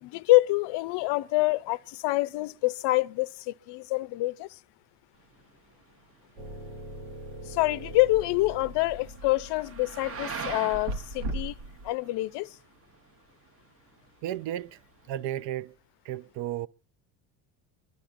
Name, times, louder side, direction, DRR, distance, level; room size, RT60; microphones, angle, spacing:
voice 1, 0.0-4.5 7.5-11.5 11.8-12.5, left 19 dB, 60° left, 0.5 m, -26 dB
sound 1, 5.2-15.1, right 5 dB, 30° right, 0.8 m, -45 dB
sound 2, 6.4-11.9, right 1 dB, 85° right, 1.3 m, -39 dB
voice 2, 14.2-14.8 15.1-15.7 16.0-16.7, right 12 dB, 65° right, 0.6 m, -33 dB
25.0 x 11.5 x 2.5 m
supercardioid pair, 100°, 49 cm